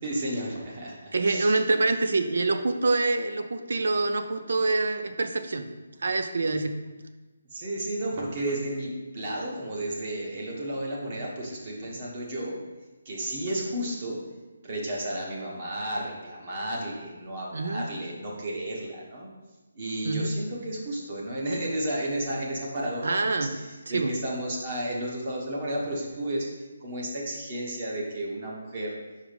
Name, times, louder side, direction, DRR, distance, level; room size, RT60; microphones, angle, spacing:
voice 1, 0.0-1.6 7.5-12.6 13.0-14.2 14.6-19.3 19.7-29.0, right 1 dB, 35° right, -3 dB, 1.3 m, -32 dB
voice 2, 1.1-5.7 6.0-6.7 17.5-17.9 20.0-20.3 23.0-23.5 23.9-24.1, right 3 dB, 70° right, 8 dB, 0.7 m, -26 dB
5.0 x 4.9 x 5.2 m, 1.2 s
hypercardioid pair, 170°, 0 cm